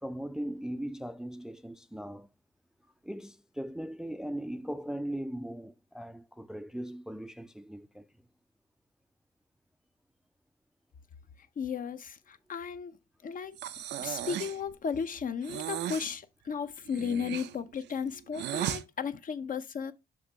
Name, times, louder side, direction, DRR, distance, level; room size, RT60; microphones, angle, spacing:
voice 1, 0.0-2.3 3.1-8.1, right 1 dB, 5° right, 0.4 m, -39 dB
voice 2, 11.6-13.0 13.2-13.6 14.0-19.9, left 6 dB, 55° left, 0.7 m, -35 dB
Breathing, 13.6-14.6 15.4-16.1 16.9-18.8, right 11 dB, 90° right, 0.5 m, -36 dB
6.5 x 2.9 x 5.7 m
cardioid pair, 80°, 17 cm